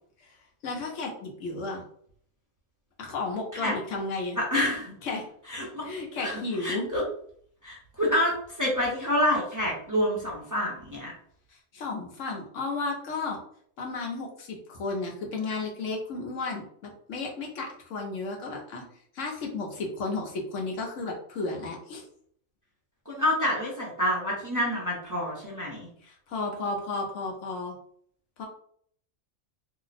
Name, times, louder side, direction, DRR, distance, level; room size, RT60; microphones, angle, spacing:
voice 1, 0.6-1.8 3.0-4.4 5.0-5.3 5.8-6.9 11.5-13.4 13.8-18.8 19.1-22.0 26.0-27.7 28.4-28.5, left 3 dB, 80° left, 1 dB, 1.2 m, -33 dB
voice 2, 4.5-5.0 5.5-5.8 6.2-7.0 7.6-11.1 23.1-25.9, left 1 dB, 20° right, -4 dB, 0.6 m, -28 dB
2.8 x 2.1 x 4.0 m, 0.62 s
omnidirectional pair, 1.3 m